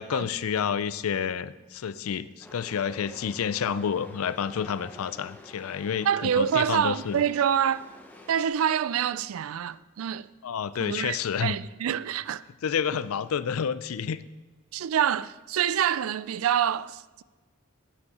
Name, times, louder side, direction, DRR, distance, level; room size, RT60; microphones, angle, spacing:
voice 1, 0.0-7.2 10.4-11.6 12.6-14.2, left 7 dB, 90° left, 0.4 m, -29 dB
Chatter / Subway metro underground, 2.4-8.5, left 1 dB, 10° left, 1.0 m, -48 dB
voice 2, 6.0-7.9 8.3-10.3 10.8-12.4 14.7-17.2, right 9 dB, 75° right, 0.4 m, -26 dB
9.6 x 7.0 x 5.6 m
head